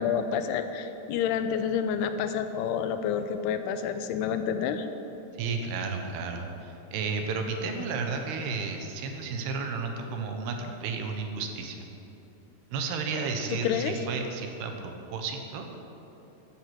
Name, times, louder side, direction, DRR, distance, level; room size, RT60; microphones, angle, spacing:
voice 1, 0.0-4.9 13.6-14.0, left 7 dB, 80° left, 9 dB, 2.6 m, -29 dB
voice 2, 5.4-11.9 12.7-15.7, right 4 dB, 75° right, 4 dB, 3.1 m, -32 dB
14.0 x 10.5 x 6.0 m, 3.0 s
omnidirectional pair, 4.8 m